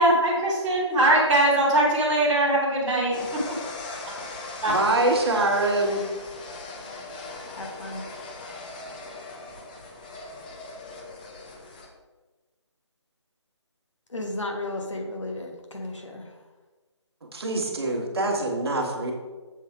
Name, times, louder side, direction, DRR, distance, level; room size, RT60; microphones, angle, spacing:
voice 1, 0.0-3.4 4.6-4.7, right 1 dB, 5° right, -11 dB, 1.3 m, -21 dB
sound 1, 3.1-11.9, left 3 dB, 15° left, 0.6 m, -39 dB
voice 2, 4.7-6.0 17.3-19.1, right 2 dB, 55° right, 2 dB, 1.3 m, -24 dB
voice 3, 7.5-8.0 14.1-16.3, left 2 dB, 85° left, 2 dB, 1.4 m, -34 dB
7.1 x 3.9 x 4.7 m, 1.3 s
figure-of-eight pair, 155°, 15 cm